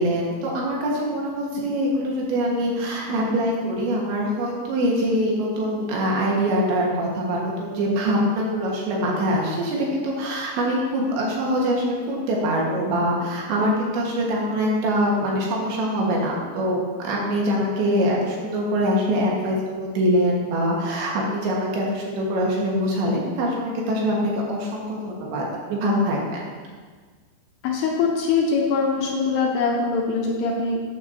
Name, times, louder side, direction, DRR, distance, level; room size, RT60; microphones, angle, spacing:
voice 1, 0.0-25.4 25.7-26.4, equal, 75° right, -3 dB, 3.8 m, -24 dB
voice 2, 27.6-30.8, left 4 dB, 75° left, -1 dB, 2.7 m, -22 dB
13.5 x 9.4 x 2.9 m, 1.5 s
omnidirectional pair, 5.3 m